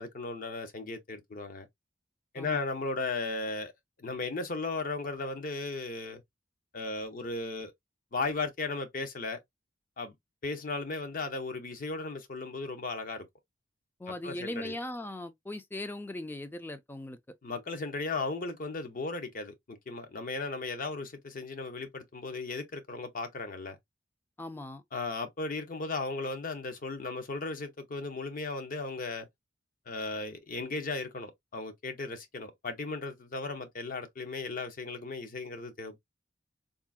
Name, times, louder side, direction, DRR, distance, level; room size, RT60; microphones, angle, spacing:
voice 1, 0.0-1.7 2.3-3.7 4.0-6.2 6.7-7.7 8.1-9.4 10.0-10.1 10.4-13.3 14.1-14.7 17.4-23.8 24.9-29.3 29.9-36.0, left 3 dB, 50° left, 0.7 m, -36 dB
voice 2, 14.0-17.2 24.4-24.8, left 1 dB, 10° left, 0.3 m, -39 dB
3.6 x 2.0 x 2.3 m
head